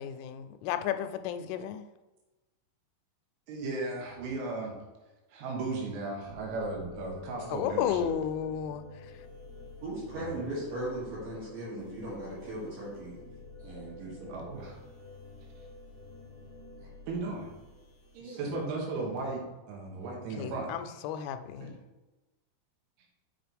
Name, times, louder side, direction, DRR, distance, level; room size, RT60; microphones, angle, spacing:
voice 1, 0.0-1.8 7.5-8.8 20.4-21.7, left 9 dB, 85° left, 9 dB, 2.9 m, -33 dB
voice 2, 3.5-4.7 5.3-8.1 10.2-10.4 14.3-14.7 17.1-17.5 18.1-19.4 19.7-20.7 21.2-21.3 21.6-21.7, right 3 dB, 80° right, -1 dB, 3.8 m, -36 dB
sound 1, 6.2-18.2, left 3 dB, 40° left, 1.3 m, -49 dB
voice 3, 9.8-13.2 13.6-14.5 18.2-18.6, right 1 dB, 50° right, -9 dB, 3.7 m, -38 dB
7.2 x 6.0 x 3.5 m, 1.1 s
omnidirectional pair, 5.6 m